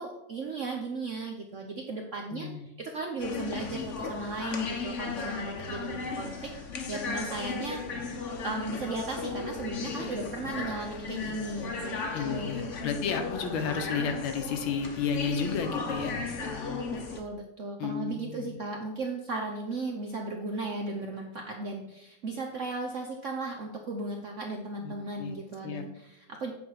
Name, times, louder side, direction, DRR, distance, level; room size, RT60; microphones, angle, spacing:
voice 1, 0.0-2.5 2.8-6.5 6.9-7.8 8.4-12.0 12.2-12.7 17.1-26.5, right 3 dB, 65° right, 1 dB, 0.7 m, -36 dB
voice 2, 2.3-2.7 12.1-16.2 17.8-18.5 24.8-25.4 25.6-25.8, left 6 dB, 80° left, 6 dB, 1.7 m, -32 dB
sound 1, 3.2-17.2, left 4 dB, 50° left, 1.0 m, -36 dB
8.4 x 4.4 x 5.6 m, 0.89 s
omnidirectional pair, 2.2 m